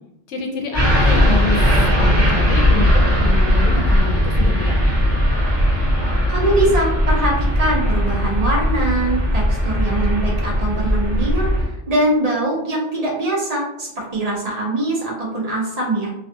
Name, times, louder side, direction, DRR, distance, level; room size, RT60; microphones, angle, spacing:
voice 1, 0.3-5.1, left 3 dB, 75° left, 2 dB, 0.9 m, -27 dB
sound 1, 0.7-11.7, equal, 20° right, 1.3 m, -18 dB
voice 2, 6.3-16.1, right 1 dB, 40° right, -4 dB, 0.6 m, -22 dB
2.5 x 2.2 x 2.6 m, 0.85 s
omnidirectional pair, 1.2 m